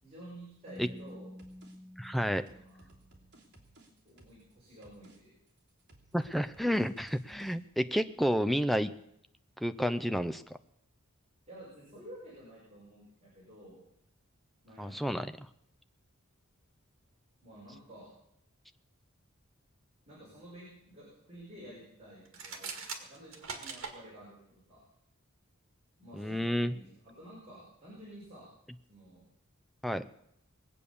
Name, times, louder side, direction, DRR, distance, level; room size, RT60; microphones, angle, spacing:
voice 1, 0.0-1.3 2.3-2.9 4.0-5.4 11.5-13.8 14.6-15.2 17.4-18.1 20.1-24.8 26.0-28.5 28.9-29.2, right 1 dB, 30° right, -7 dB, 5.6 m, -51 dB
Keyboard (musical), 0.7-3.4, left 1 dB, 15° left, 1.3 m, -50 dB
sound 1, 0.8-1.1 1.4-1.8 2.0-4.5 4.8-5.2 5.5-7.6, right 2 dB, 50° right, 3.0 m, -60 dB
voice 2, 2.0-2.5 6.1-8.9 9.6-10.4 14.8-15.5 26.1-26.7 29.8-30.1, equal, ahead, 10 dB, 0.5 m, -30 dB
sound 2, 22.3-24.0, right 5 dB, 70° right, 2.1 m, -41 dB
21.0 x 8.5 x 7.0 m, 0.78 s
head